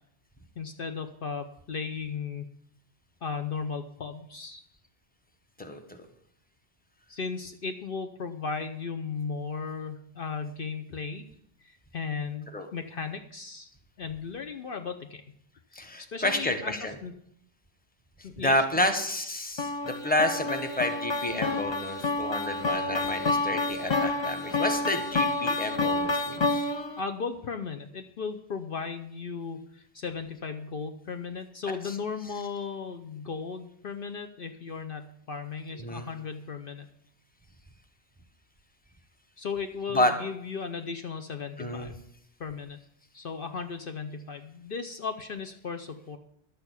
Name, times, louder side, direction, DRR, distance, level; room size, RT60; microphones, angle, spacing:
voice 1, 0.6-2.5 3.2-4.6 7.1-11.2 11.6-13.7 14.0-15.2 15.7-17.1 18.2-18.6 27.0-36.9 39.4-41.9 42.4-42.8 43.1-46.2, left 5 dB, 60° left, 6 dB, 0.9 m, -36 dB
voice 2, 15.7-16.9 18.4-26.4 31.7-31.8 35.8-36.1 39.9-40.1 41.6-41.9, left 1 dB, 10° left, 6 dB, 1.2 m, -29 dB
sound 1, 19.6-27.0, left 3 dB, 30° left, 0.6 m, -29 dB
11.5 x 6.9 x 8.2 m, 0.70 s
omnidirectional pair, 1.1 m